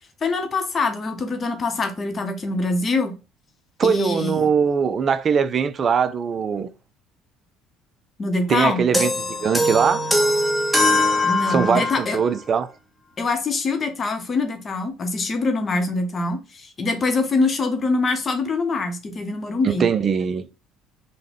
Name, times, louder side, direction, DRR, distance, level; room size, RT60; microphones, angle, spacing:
voice 1, 0.2-3.1 3.8-4.5 8.2-8.8 11.2-12.2 13.2-19.9, left 3 dB, 35° left, 0.7 m, -24 dB
voice 2, 3.8-6.7 8.5-10.1 11.5-12.7 19.6-20.4, right 6 dB, 45° right, 0.4 m, -21 dB
sound 1, 8.9-12.1, left 1 dB, ahead, 0.8 m, -21 dB
3.7 x 2.1 x 3.4 m
supercardioid pair, 80°, 0 cm